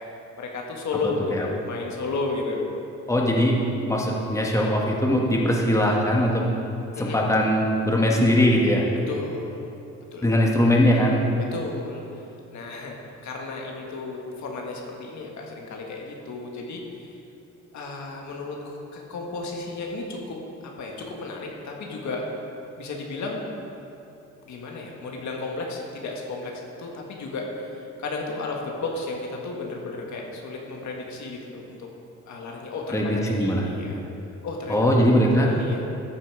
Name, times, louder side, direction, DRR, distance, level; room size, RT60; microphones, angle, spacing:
voice 1, 0.4-2.6 6.9-7.2 9.1-9.7 10.1-10.5 11.5-12.0 12.5-13.0 13.2-17.2 17.7-20.4 20.6-22.2 22.8-23.5 24.5-31.9 32.3-34.0 34.4-35.2 35.4-35.8, left 3 dB, 70° left, 0 dB, 1.7 m, -33 dB
voice 2, 3.1-3.6 3.8-6.4 7.0-8.8 10.2-11.2 32.9-33.6 34.7-35.5, equal, 10° left, -2 dB, 1.4 m, -20 dB
13.0 x 5.8 x 4.7 m, 2.8 s
cardioid pair, 90°, 30 cm